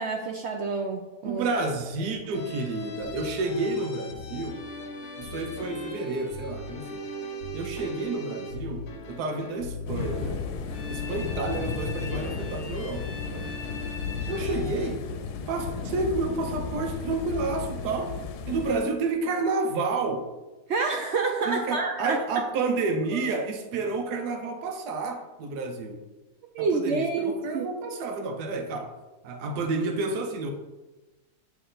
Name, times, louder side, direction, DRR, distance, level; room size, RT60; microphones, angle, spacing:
voice 1, 0.0-1.6 2.1-2.2 20.7-22.2 26.5-27.7, right 4 dB, 70° right, 3 dB, 0.6 m, -28 dB
voice 2, 1.2-4.6 5.2-7.0 7.5-10.4 10.9-13.5 14.3-15.0 15.5-18.2 18.5-20.3 21.4-26.0 26.6-28.9 29.2-30.5, right 3 dB, 85° right, 4 dB, 1.3 m, -30 dB
sound 1, 2.3-14.9, left 2 dB, 65° left, 1.3 m, -39 dB
sound 2, 9.9-18.8, left 5 dB, 90° left, 1.2 m, -34 dB
8.1 x 3.2 x 3.8 m, 1.1 s
omnidirectional pair, 1.7 m